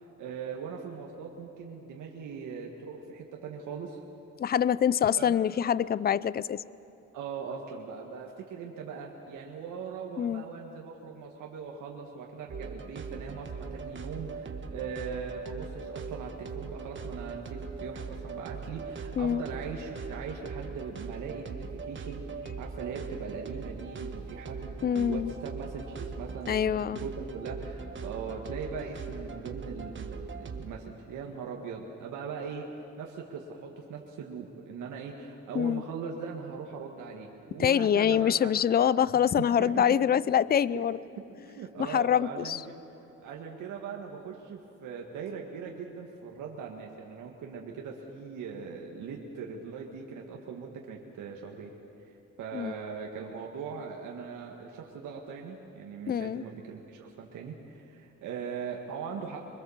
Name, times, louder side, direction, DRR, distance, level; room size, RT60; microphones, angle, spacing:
voice 1, 0.0-4.0 5.2-5.4 7.1-32.6 33.0-38.5 39.1-39.3 39.6-39.8 40.7-40.8 41.5-42.8 43.2-51.7 52.0-59.5, right 6 dB, 80° right, 0 dB, 1.9 m, -40 dB
voice 2, 4.4-6.6 10.2-10.4 19.2-19.4 24.8-25.3 26.5-27.0 35.5-35.8 37.6-41.0 41.8-42.6 52.5-52.7 56.1-56.4, left 9 dB, 30° left, 19 dB, 0.5 m, -25 dB
sound 1, 12.5-30.7, right 4 dB, 40° right, 1.6 m, -40 dB
24.5 x 21.0 x 7.3 m, 2.9 s
cardioid pair, 90°, 30 cm